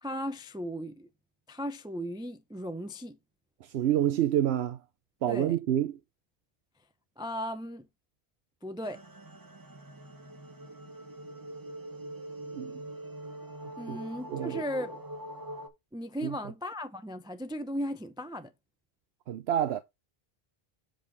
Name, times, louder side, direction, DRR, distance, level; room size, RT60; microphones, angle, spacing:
voice 1, 0.0-1.1 1.5-3.2 5.3-5.6 7.2-7.9 8.6-9.0 13.8-15.0 15.9-18.5, equal, 5° right, 0.5 m, -36 dB
voice 2, 3.6-4.8 5.2-5.9 12.5-12.8 13.9-14.0 14.3-14.6 16.2-16.3 19.3-19.8, right 11 dB, 80° right, 0.9 m, -28 dB
sound 1, 8.8-15.7, right 1 dB, 20° right, 1.0 m, -43 dB
7.6 x 5.3 x 4.0 m
omnidirectional pair, 1.1 m